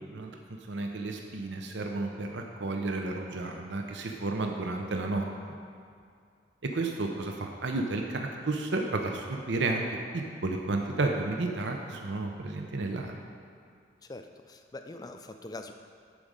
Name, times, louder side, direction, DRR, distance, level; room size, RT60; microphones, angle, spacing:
voice 1, 0.7-5.3 6.6-13.2, right 2 dB, 70° right, 2 dB, 0.7 m, -32 dB
voice 2, 14.0-15.7, left 2 dB, 20° left, 6 dB, 0.4 m, -43 dB
11.5 x 4.9 x 5.1 m, 2.3 s
head